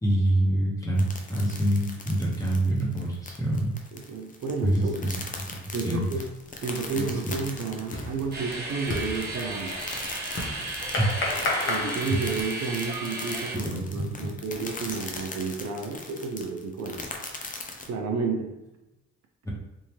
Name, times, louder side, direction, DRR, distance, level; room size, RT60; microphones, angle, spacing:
voice 1, 0.0-3.8 4.6-5.1 5.7-6.1 6.9-7.3 11.0-11.5 11.8-12.0 13.5-14.1 19.4-19.5, right 1 dB, 10° left, -4 dB, 1.2 m, -26 dB
sound 1, 1.0-17.9, left 3 dB, 25° left, 0.6 m, -40 dB
voice 2, 3.9-5.1 5.7-6.3 6.6-9.7 11.7-17.0 17.9-18.5, right 4 dB, 60° right, 2 dB, 0.6 m, -31 dB
sound 2, 6.4-6.7 7.0-12.8, left 2 dB, 40° left, 1.0 m, -33 dB
sound 3, 8.3-13.5, right 2 dB, 35° right, 1.1 m, -35 dB
3.6 x 2.7 x 3.0 m, 0.96 s
cardioid pair, 90°, 30 cm